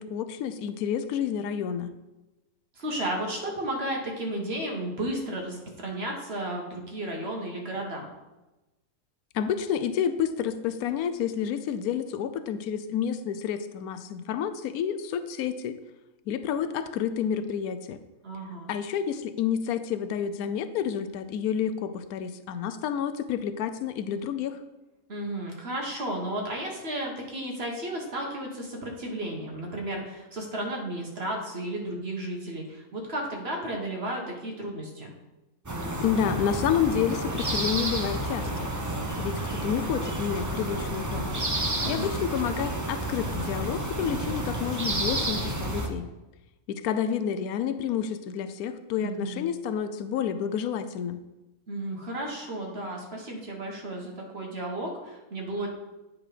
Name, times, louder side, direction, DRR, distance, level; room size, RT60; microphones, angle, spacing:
voice 1, 0.0-1.9 9.3-15.8 16.3-18.0 18.7-24.6 36.0-38.7 39.2-41.3 41.9-46.1 46.7-51.2, left 8 dB, 85° left, 11 dB, 1.1 m, -29 dB
voice 2, 2.8-8.1 18.2-18.7 25.1-35.1 41.8-42.2 49.0-49.4 51.7-55.7, right 1 dB, 45° right, 0 dB, 1.4 m, -33 dB
sound 1, 35.7-45.9, right 1 dB, 25° right, 0.4 m, -30 dB
9.6 x 3.7 x 4.9 m, 1.1 s
omnidirectional pair, 1.5 m